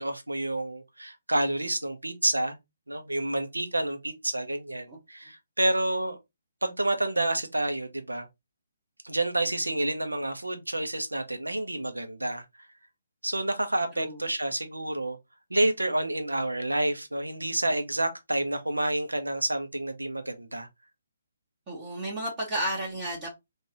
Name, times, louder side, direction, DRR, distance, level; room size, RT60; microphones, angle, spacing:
voice 1, 0.0-2.6 2.9-6.2 6.6-8.3 9.0-12.4 13.2-15.2 15.5-20.7, right 1 dB, 85° right, 0.8 m, -29 dB
voice 2, 21.7-23.3, right 1 dB, 25° right, 1.2 m, -32 dB
3.8 x 2.5 x 2.9 m
figure-of-eight pair, 135°, 0 cm